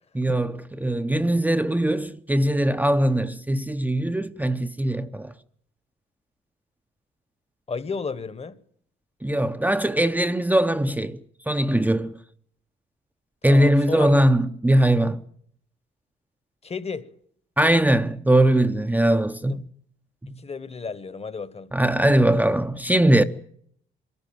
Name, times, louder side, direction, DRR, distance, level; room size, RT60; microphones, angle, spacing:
voice 1, 0.1-5.3 9.2-11.2 11.5-12.1 13.4-15.2 17.6-19.6 21.7-23.2, right 1 dB, 10° right, 0.7 m, -21 dB
voice 2, 7.7-8.6 13.5-14.1 16.6-17.1 19.5-19.6 20.3-21.7, left 4 dB, 30° left, 1.3 m, -33 dB
22.5 x 13.5 x 9.1 m
cardioid pair, 90°, 20 cm